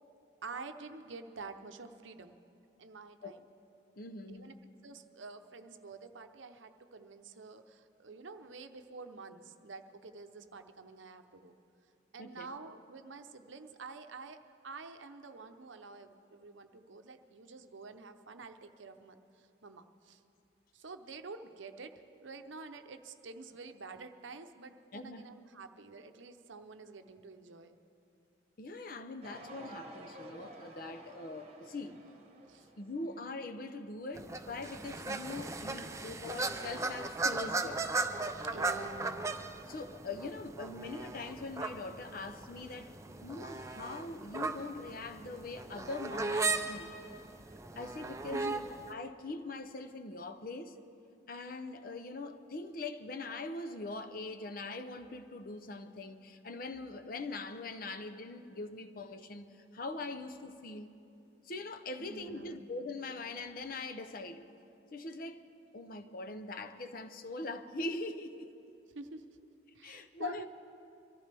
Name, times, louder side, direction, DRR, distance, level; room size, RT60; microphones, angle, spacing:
voice 1, 0.4-2.4 2.8-3.4 4.3-11.5 12.1-20.2 20.7-27.8 32.5-32.7 38.5-39.3 48.3-48.6 62.0-62.6 68.9-69.4 69.7-70.5, right 4 dB, 75° right, 0.8 m, -48 dB
voice 2, 4.0-4.6 12.2-12.6 24.9-25.3 28.6-32.1 32.8-37.9 39.7-42.9 43.2-46.9 47.8-50.8 51.3-60.9 61.4-64.4 64.9-65.5 65.7-68.5 69.8-70.5, left 2 dB, 45° left, 0.7 m, -42 dB
sound 1, 29.2-33.2, right 1 dB, 35° right, 1.2 m, -51 dB
sound 2, 34.1-48.9, right 3 dB, 15° right, 0.5 m, -37 dB
24.0 x 14.5 x 3.4 m
head